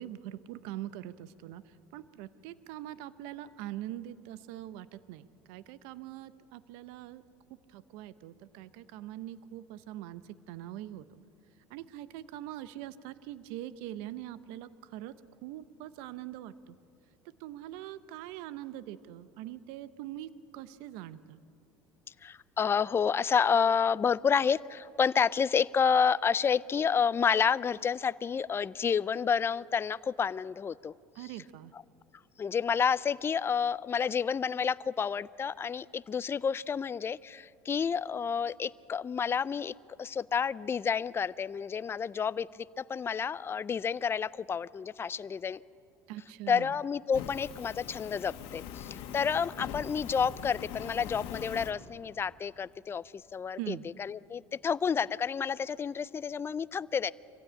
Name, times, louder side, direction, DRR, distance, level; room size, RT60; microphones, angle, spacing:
voice 1, 0.0-1.6 1.9-7.2 7.7-11.1 11.7-15.2 15.4-16.7 17.4-21.4 31.2-31.7 46.1-46.7 53.6-53.9, right 13 dB, 75° right, 15 dB, 0.8 m, -43 dB
voice 2, 22.2-30.9 31.2-31.3 31.7-31.8 32.4-45.6 46.5-53.0 53.3-57.1, left 6 dB, 25° left, 18 dB, 0.4 m, -30 dB
Fire, 47.1-51.7, left 8 dB, 70° left, 1.7 m, -42 dB
24.0 x 15.5 x 8.9 m, 2.6 s
supercardioid pair, 90°, 10 cm